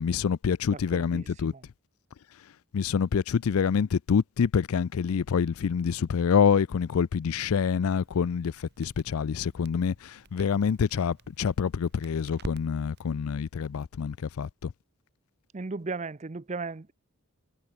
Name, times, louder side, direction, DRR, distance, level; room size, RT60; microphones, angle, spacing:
voice 1, 0.0-1.5 2.7-14.7, left 6 dB, 80° left, 0.4 m, -26 dB
voice 2, 0.7-1.6 15.5-16.9, right 3 dB, 30° right, 0.6 m, -36 dB
Crackle, 7.9-13.1, right 1 dB, 50° right, 2.2 m, -47 dB
head